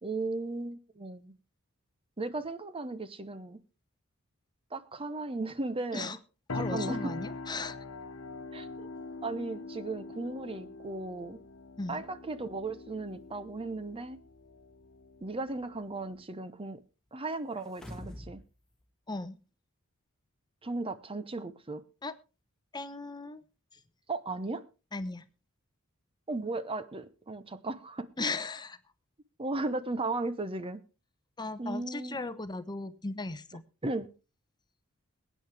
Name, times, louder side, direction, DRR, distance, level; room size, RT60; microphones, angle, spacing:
voice 1, 0.0-1.3 2.2-3.6 4.7-6.2 6.7-7.1 8.5-8.9 9.2-11.4 11.9-14.2 15.2-16.8 17.1-18.4 20.6-21.8 24.1-24.6 26.3-28.1 29.4-30.8 31.6-32.3 33.8-34.1, right 2 dB, 25° right, 0.8 m, -36 dB
sound 1, 6.5-16.2, left 3 dB, 70° left, 1.2 m, -42 dB
voice 2, 6.5-7.8 11.8-12.0 19.1-19.4 22.0-22.1 22.7-23.4 23.7-23.8 24.9-25.3 28.2-28.8 31.4-33.6, left 3 dB, 20° left, 0.9 m, -37 dB
sound 2, 17.6-18.4 18.8-18.9, equal, 5° left, 1.6 m, -44 dB
22.0 x 9.4 x 3.4 m
head